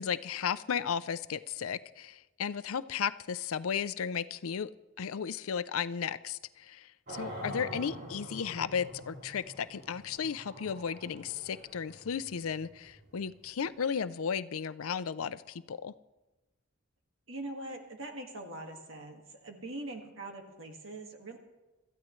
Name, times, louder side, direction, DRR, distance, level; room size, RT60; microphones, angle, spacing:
voice 1, 0.0-4.7 5.0-15.9, left 7 dB, 85° left, 15 dB, 0.5 m, -34 dB
sound 1, 7.1-14.0, equal, 45° right, 2.8 m, -46 dB
voice 2, 7.5-8.1 17.3-21.4, right 1 dB, 70° right, 2 dB, 1.8 m, -43 dB
26.0 x 14.0 x 3.2 m, 1.1 s
head